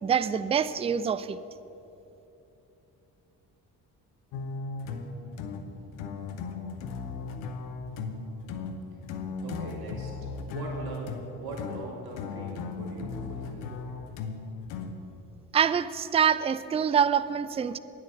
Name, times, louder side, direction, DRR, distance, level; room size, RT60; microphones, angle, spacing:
voice 1, 0.0-1.4 15.5-17.8, right 7 dB, 15° right, 15 dB, 0.3 m, -25 dB
sound 1, 4.3-15.2, left 4 dB, 85° left, 0.8 m, -37 dB
voice 2, 9.4-10.1 10.5-11.1 11.4-13.7, right 2 dB, 60° right, -2 dB, 2.9 m, -40 dB
9.5 x 8.0 x 6.9 m, 3.0 s
supercardioid pair, 50°, 42 cm